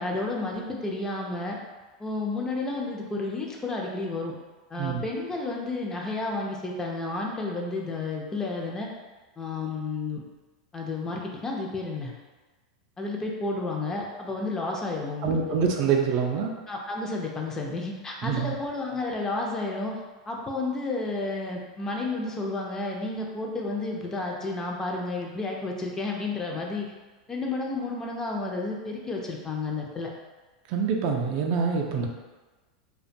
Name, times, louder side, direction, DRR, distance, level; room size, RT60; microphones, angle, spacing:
voice 1, 0.0-1.6 2.0-4.3 4.7-8.9 9.4-10.2 10.7-12.1 13.0-15.6 16.7-20.0 20.3-26.9 27.3-30.1, left 3 dB, 20° left, -1 dB, 0.4 m, -31 dB
voice 2, 15.2-16.5 18.2-18.5 30.7-32.1, right 6 dB, 50° right, 1 dB, 0.3 m, -25 dB
2.4 x 2.2 x 2.5 m, 1.2 s
hypercardioid pair, 90°, 3 cm